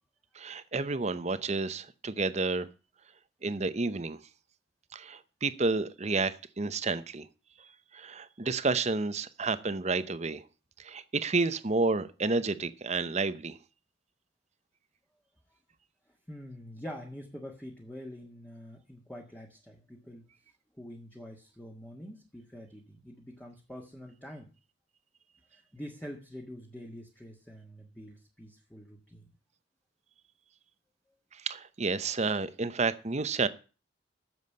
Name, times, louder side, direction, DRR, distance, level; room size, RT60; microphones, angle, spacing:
voice 1, 0.3-2.7 3.4-4.2 4.9-7.3 7.9-10.4 10.8-13.6 31.4-33.5, right 3 dB, 35° right, 0.8 m, -30 dB
voice 2, 16.3-20.2 20.8-24.5 25.5-29.3, equal, 10° left, 1.6 m, -46 dB
9.5 x 7.3 x 8.4 m
head